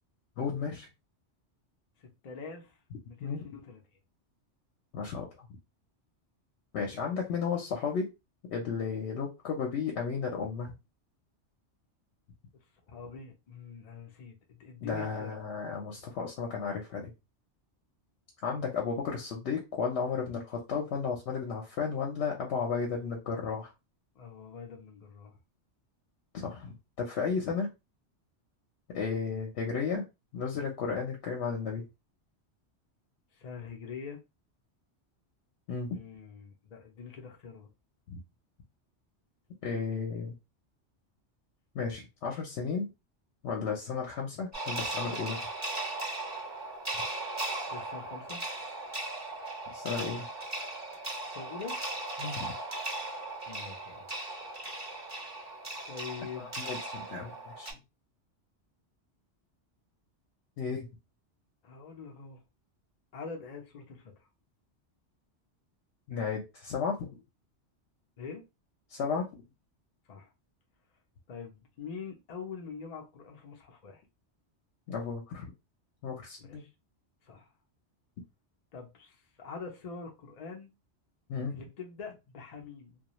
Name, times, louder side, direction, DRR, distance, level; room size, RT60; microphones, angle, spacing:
voice 1, 0.4-0.9 3.2-3.4 4.9-5.3 6.7-8.1 8.5-10.7 14.8-17.1 18.4-23.7 26.3-27.7 28.9-30.1 30.3-31.8 35.7-36.0 38.1-38.2 39.6-40.4 41.7-42.9 43.4-45.4 49.7-50.3 52.2-52.5 56.4-57.7 60.6-60.9 66.1-67.1 68.9-69.2 74.9-75.5 76.0-76.6 81.3-81.6, left 5 dB, 75° left, 0.9 m, -33 dB
voice 2, 2.0-2.8 3.1-3.8 12.9-15.4 18.5-18.6 24.2-25.4 33.3-34.2 35.9-37.7 47.7-48.4 51.3-51.8 53.5-54.1 55.9-56.5 61.6-62.4 63.1-64.1 68.2-68.4 70.1-70.3 71.3-74.0 76.4-76.7 77.2-77.5 78.7-80.7 81.5-83.0, left 5 dB, 45° left, 0.6 m, -44 dB
sound 1, 44.5-57.7, right 2 dB, 15° right, 0.7 m, -37 dB
2.3 x 2.3 x 2.9 m
omnidirectional pair, 1.2 m